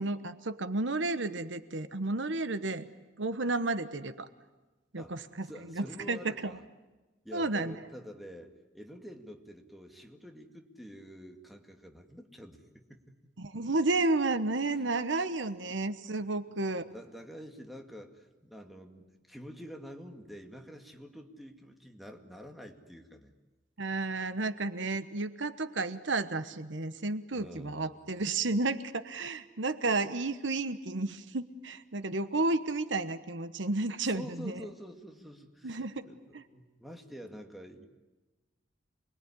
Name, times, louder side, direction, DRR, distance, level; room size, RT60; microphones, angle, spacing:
voice 1, 0.0-2.9 3.2-4.3 4.9-5.5 5.7-6.5 7.3-7.7 13.4-16.9 23.8-34.6 35.6-36.1, right 2 dB, 75° right, 11 dB, 1.2 m, -32 dB
voice 2, 5.0-6.6 7.2-13.1 14.7-14.9 15.7-15.8 16.5-23.3 27.3-28.1 34.0-37.9, equal, ahead, 3 dB, 2.1 m, -48 dB
27.5 x 21.5 x 9.9 m, 1.1 s
head